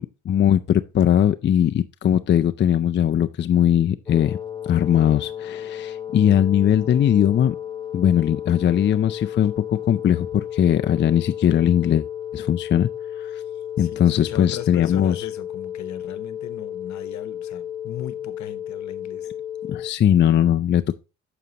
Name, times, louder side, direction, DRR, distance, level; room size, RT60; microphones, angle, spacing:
voice 1, 0.0-4.4 4.6-7.6 7.9-12.1 12.3-12.9 13.2-13.4 13.8-15.2 19.6-20.9, left 10 dB, 40° left, 0.4 m, -20 dB
sound 1, 4.1-19.9, left 10 dB, 15° left, 0.8 m, -33 dB
voice 2, 13.8-19.3, left 11 dB, 70° left, 1.0 m, -37 dB
9.2 x 6.9 x 2.9 m
cardioid pair, 90°, 30 cm